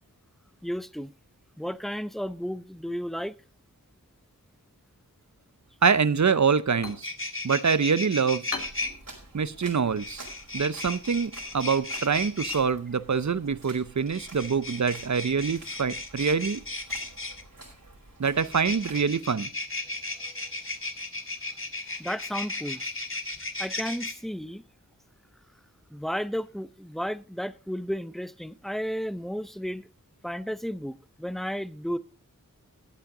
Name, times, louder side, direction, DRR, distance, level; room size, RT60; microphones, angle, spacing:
voice 1, 0.6-1.1 1.6-3.3 22.0-23.0 23.6-24.6 25.9-29.8 30.2-32.0, equal, ahead, 0.6 m, -33 dB
voice 2, 5.8-7.1 7.4-8.4 9.3-10.3 10.5-16.6 18.2-19.5, right 5 dB, 60° right, 0.7 m, -25 dB
sound 1, 6.5-13.9, left 3 dB, 90° left, 1.9 m, -45 dB
sound 2, 6.8-8.9 10.0-12.6 14.0-17.4 18.4-24.1, left 2 dB, 40° left, 1.6 m, -35 dB
sound 3, 8.6-19.1, right 2 dB, 75° right, 5.2 m, -49 dB
14.5 x 8.9 x 3.8 m
wide cardioid pair, 55°, 33 cm